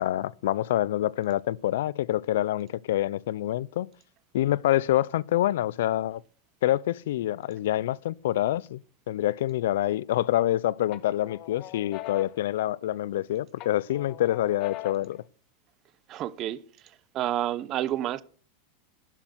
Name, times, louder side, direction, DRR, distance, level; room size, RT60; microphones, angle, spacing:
voice 1, 0.0-3.9 4.3-6.2 6.6-8.8 9.1-15.2, left 13 dB, 80° left, 0.4 m, -26 dB
sound 1, 9.9-10.5 10.9-13.2 13.6-15.2, left 16 dB, 40° left, 0.8 m, -42 dB
voice 2, 16.1-16.6 17.1-18.2, right 12 dB, 35° right, 0.8 m, -29 dB
11.5 x 6.3 x 8.1 m
supercardioid pair, 145°, 0 cm